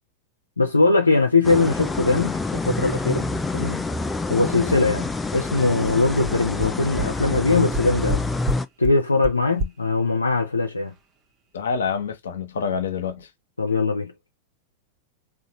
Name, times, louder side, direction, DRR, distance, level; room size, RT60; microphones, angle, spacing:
voice 1, 0.6-3.3 3.5-3.8 4.3-8.2 8.8-10.9 13.6-14.1, left 3 dB, 80° left, 0.5 m, -21 dB
sound 1, 1.4-8.7, left 2 dB, 10° left, 0.4 m, -27 dB
sound 2, 5.5-5.6 5.8-5.9 6.2-6.3 6.6-6.7 7.0-7.1 7.3-7.4 7.7-8.2 8.4-8.6 8.8-8.9 9.2-9.3 9.6-9.7, right 1 dB, 35° right, 0.8 m, -26 dB
voice 2, 11.5-13.3, left 6 dB, 65° left, 0.8 m, -27 dB
3.7 x 2.4 x 4.0 m
figure-of-eight pair, 90°, 0 cm